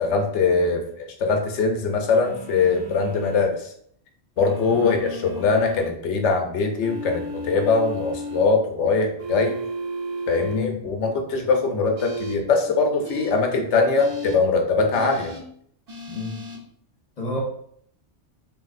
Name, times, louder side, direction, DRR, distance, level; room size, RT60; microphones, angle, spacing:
voice 1, 0.0-3.7 4.4-9.6 10.3-15.4, left 4 dB, 75° left, 3 dB, 0.9 m, -22 dB
sound 1, 2.2-3.5 4.4-5.9 6.8-8.4 9.2-10.6 12.0-12.3 13.0-13.3 14.0-14.3 14.9-15.4 15.9-16.6, equal, 50° right, 1.0 m, -34 dB
voice 2, 10.5-10.8 16.1-16.4 17.2-17.4, left 3 dB, 45° left, -3 dB, 0.7 m, -30 dB
3.0 x 2.5 x 2.4 m, 0.67 s
omnidirectional pair, 1.2 m